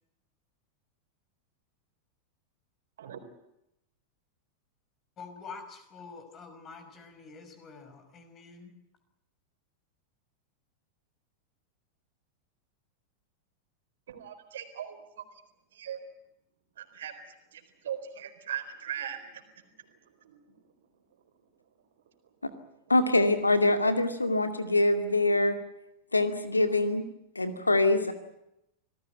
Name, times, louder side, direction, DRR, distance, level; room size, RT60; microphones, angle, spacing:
voice 1, 5.2-8.8, left 4 dB, 30° left, 8 dB, 5.5 m, -47 dB
voice 2, 14.1-15.2 15.7-16.0 16.8-17.1 17.5-19.5 20.2-20.4, right 9 dB, 60° right, 8 dB, 4.1 m, -39 dB
voice 3, 22.9-25.6 26.1-27.0 27.4-28.1, left 2 dB, 80° left, 8 dB, 2.3 m, -24 dB
27.5 x 19.0 x 9.0 m, 0.83 s
figure-of-eight pair, 90°, 0 cm